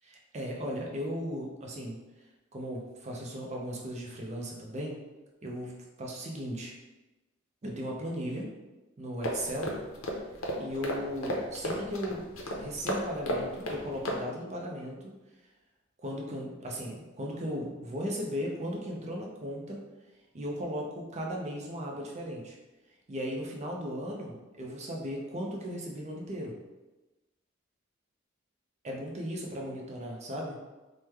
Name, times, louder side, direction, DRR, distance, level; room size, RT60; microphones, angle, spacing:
voice 1, 0.1-2.0 2.5-5.0 5.4-6.7 7.6-8.5 9.0-9.8 10.6-15.1 16.0-19.8 20.3-22.6 23.1-26.5 28.8-30.6, equal, 35° right, -1 dB, 0.5 m, -36 dB
sound 1, 9.2-14.2, equal, 90° left, 0.6 m, -34 dB
3.1 x 2.1 x 3.3 m, 1.1 s
head